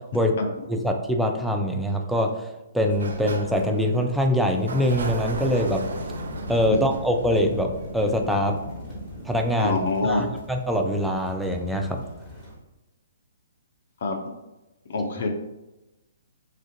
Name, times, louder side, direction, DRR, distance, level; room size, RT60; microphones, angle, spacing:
voice 1, 0.7-2.3 2.7-5.8 6.5-8.5 9.2-12.0, equal, ahead, 2 dB, 0.3 m, -24 dB
Sliding door, 2.8-8.5, right 3 dB, 70° right, 0.4 m, -36 dB
sound 1, 5.2-12.6, equal, 25° left, 1.3 m, -39 dB
voice 2, 9.6-10.2 14.0-14.2 14.9-15.3, left 3 dB, 60° left, 4 dB, 0.5 m, -25 dB
3.2 x 2.4 x 2.6 m, 1.0 s
figure-of-eight pair, 130°, 0 cm